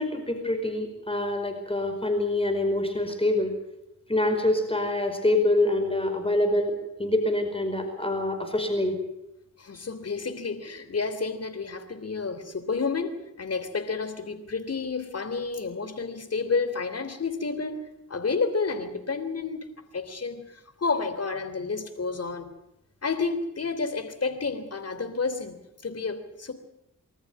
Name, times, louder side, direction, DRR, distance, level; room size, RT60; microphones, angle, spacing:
voice 1, 0.0-3.5 4.1-9.0, left 1 dB, 15° left, 6 dB, 4.9 m, -25 dB
voice 2, 9.6-17.8 18.1-19.6 19.9-22.5 23.0-25.6 25.8-26.5, left 4 dB, 50° left, 10 dB, 3.3 m, -30 dB
24.5 x 14.0 x 9.4 m, 0.85 s
cardioid pair, 55°, 33 cm